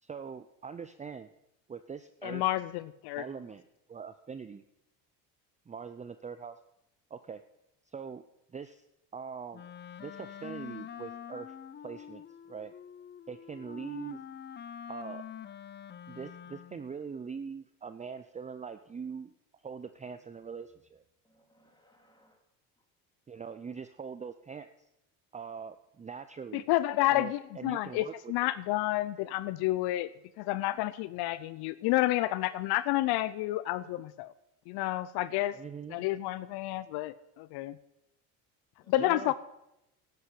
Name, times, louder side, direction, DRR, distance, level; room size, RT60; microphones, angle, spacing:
voice 1, 0.0-1.3 1.7-2.5 3.2-4.6 5.7-6.6 7.1-7.4 7.9-8.2 8.5-8.8 9.1-9.7 10.0-11.5 11.8-12.7 13.3-14.2 14.9-15.2 16.1-21.0 23.3-24.7 25.3-26.6 27.1-28.3 35.5-36.1 39.0-39.3, right 6 dB, 20° right, 11 dB, 0.6 m, -42 dB
voice 2, 2.2-3.2 26.5-30.1 30.4-34.3 34.7-35.6 35.9-37.8 38.9-39.3, left 16 dB, 70° left, 16 dB, 0.7 m, -30 dB
Wind instrument woodwind instrument, 9.5-17.0, left 9 dB, 25° left, 0.6 m, -46 dB
voice 3, 21.2-22.4 38.8-39.4, equal, 10° left, 3 dB, 3.7 m, -65 dB
11.5 x 11.0 x 8.4 m, 0.86 s
supercardioid pair, 100°, 40 cm